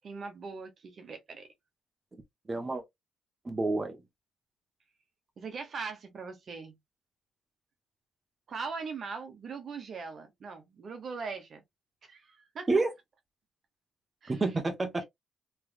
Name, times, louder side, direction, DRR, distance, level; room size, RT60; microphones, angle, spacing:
voice 1, 0.0-1.5 5.4-6.8 8.5-11.6 12.0-12.7 14.2-14.4, right 5 dB, 50° right, 1.2 m, -40 dB
voice 2, 2.5-2.8 3.4-4.0 12.7-12.9 14.3-15.0, right 3 dB, 25° right, 1.1 m, -28 dB
3.3 x 3.3 x 2.4 m
cardioid pair, 90°, 0 cm